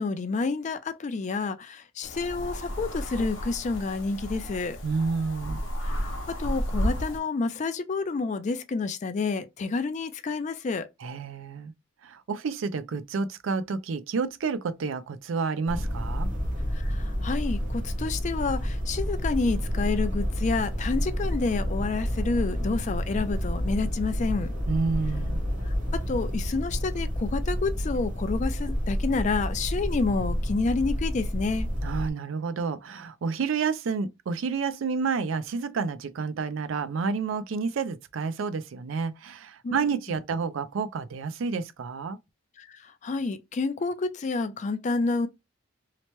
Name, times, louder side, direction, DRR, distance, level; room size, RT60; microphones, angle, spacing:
voice 1, 0.0-4.8 5.8-10.9 16.7-24.5 25.6-31.7 39.6-39.8 42.6-45.3, left 4 dB, 35° left, 0.3 m, -29 dB
sound 1, 2.0-7.2, equal, 65° left, 0.8 m, -32 dB
voice 2, 4.8-5.6 11.0-11.7 12.0-16.3 24.7-25.4 31.8-42.2, right 5 dB, 70° right, 0.4 m, -30 dB
sound 2, 15.7-32.1, equal, 35° right, 0.9 m, -29 dB
2.8 x 2.1 x 3.0 m
head